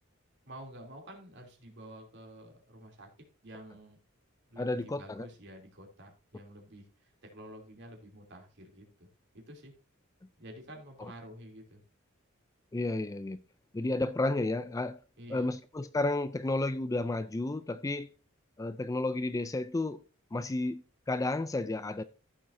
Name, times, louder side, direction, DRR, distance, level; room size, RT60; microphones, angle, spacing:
voice 1, 0.4-3.1 3.4-4.0 4.5-9.1 9.3-9.7 10.4-11.8 15.2-15.5, right 1 dB, 55° right, 3.1 m, -49 dB
voice 2, 4.6-5.3 11.0-11.1 12.7-13.4 13.7-15.0 15.3-18.1 18.6-20.0 20.3-22.0, left 2 dB, 15° left, 0.4 m, -32 dB
15.0 x 7.2 x 2.7 m
head